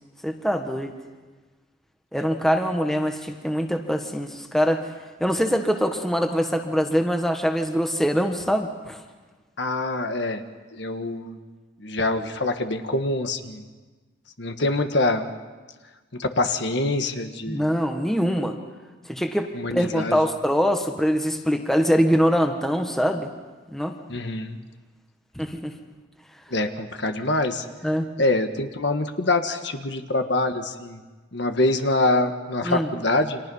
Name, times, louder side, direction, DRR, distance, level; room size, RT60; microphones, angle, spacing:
voice 1, 0.2-0.9 2.1-4.8 5.2-9.0 17.5-18.6 19.1-23.3 23.7-24.0 25.4-25.7 27.8-28.0 32.6-32.9, equal, ahead, 4 dB, 1.4 m, -23 dB
voice 2, 9.6-10.4 10.7-11.4 11.8-13.6 14.4-15.3 16.1-17.6 19.5-20.2 24.1-24.6 26.5-27.6 28.2-31.0 31.3-33.4, left 2 dB, 60° left, 7 dB, 1.5 m, -25 dB
30.0 x 26.0 x 5.6 m, 1.3 s
head